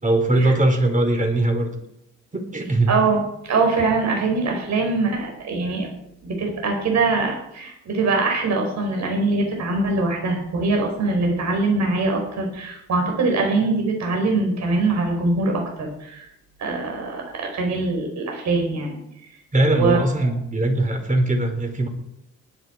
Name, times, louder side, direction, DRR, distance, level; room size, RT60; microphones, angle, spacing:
voice 1, 0.0-1.7 2.3-2.9 19.5-21.9, right 1 dB, 25° right, 4 dB, 3.7 m, -20 dB
voice 2, 2.9-5.9 6.2-16.3 16.6-19.0 19.7-20.0, right 3 dB, 65° right, 1 dB, 4.7 m, -23 dB
19.5 x 10.0 x 4.6 m, 0.79 s
cardioid pair, 90°, 30 cm